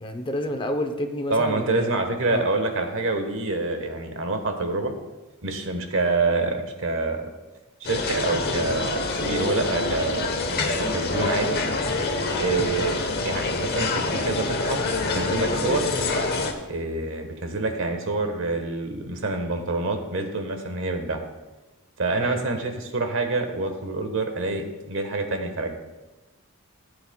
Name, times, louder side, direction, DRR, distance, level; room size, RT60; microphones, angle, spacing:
voice 1, 0.0-2.0 2.3-2.5 22.2-22.4, left 1 dB, 25° left, 6 dB, 0.6 m, -29 dB
voice 2, 1.3-4.9 5.4-7.3 7.8-11.6 12.4-15.9 16.7-21.2 22.0-25.8, right 3 dB, 65° right, 5 dB, 1.2 m, -27 dB
sound 1, 7.8-16.5, left 3 dB, 50° left, 1.0 m, -26 dB
15.5 x 8.0 x 2.2 m, 1.1 s
head